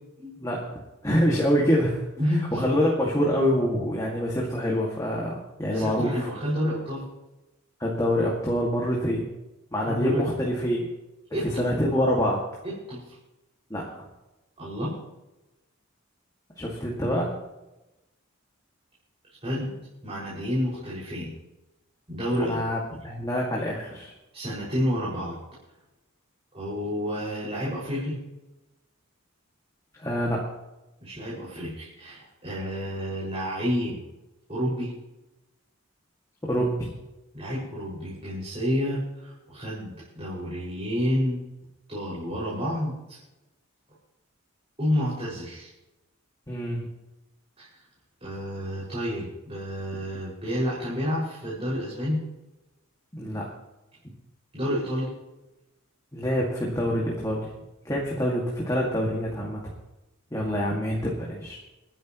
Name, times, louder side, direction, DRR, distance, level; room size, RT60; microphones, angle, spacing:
voice 1, 0.4-2.0 2.5-6.3 7.8-9.2 9.7-10.9 11.6-12.4 13.7-14.1 16.6-17.3 22.4-24.1 30.0-30.4 36.4-36.7 46.5-46.8 53.1-53.4 56.1-57.5 57.8-59.6 60.3-61.6, equal, 15° left, -3 dB, 2.2 m, -26 dB
voice 2, 2.2-2.6 5.7-7.0 9.9-10.3 11.3-11.7 12.6-13.2 14.6-15.0 19.4-19.7 20.0-21.3 22.1-22.6 24.3-25.4 26.5-28.2 31.0-34.1 34.5-34.9 37.3-41.4 41.9-43.2 44.8-45.7 47.6-47.7 48.2-52.2 54.5-55.1, equal, 30° right, -9 dB, 5.9 m, -29 dB
29.0 x 10.5 x 3.1 m, 1.0 s
head